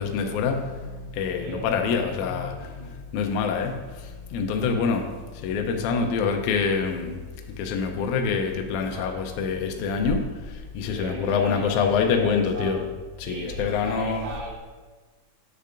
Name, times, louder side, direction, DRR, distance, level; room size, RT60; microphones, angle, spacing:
voice 1, 0.0-7.2 7.5-12.8 13.2-14.3, left 5 dB, 90° left, 4 dB, 1.7 m, -26 dB
voice 2, 1.3-2.1 2.6-2.9 4.5-4.9 8.8-9.3 10.9-12.9 13.3-14.6, right 2 dB, 90° right, -4 dB, 3.3 m, -38 dB
8.5 x 6.7 x 2.5 m, 1.4 s
omnidirectional pair, 4.1 m